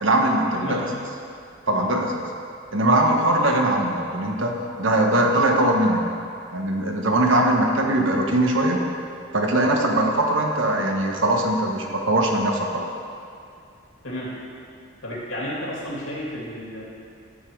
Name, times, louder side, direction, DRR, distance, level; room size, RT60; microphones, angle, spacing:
voice 1, 0.0-0.8 1.7-2.2 2.7-6.0 6.5-8.8 9.3-12.9, right 1 dB, 75° right, 1 dB, 1.2 m, -21 dB
voice 2, 0.5-1.0 1.7-1.9 14.0-14.4 15.0-16.8, equal, 85° left, -4 dB, 2.6 m, -32 dB
11.0 x 7.3 x 4.7 m, 2.4 s
head